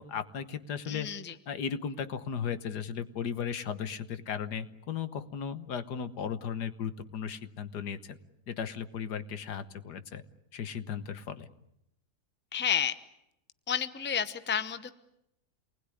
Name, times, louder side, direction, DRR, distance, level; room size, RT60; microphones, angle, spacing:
voice 1, 0.0-1.1 1.5-8.2 8.5-10.2 10.5-11.5, left 7 dB, 85° left, 12 dB, 1.8 m, -36 dB
voice 2, 0.9-1.3 12.5-12.9 13.7-14.9, left 8 dB, 10° left, 13 dB, 0.6 m, -30 dB
27.5 x 20.0 x 9.8 m, 0.83 s
omnidirectional pair, 1.7 m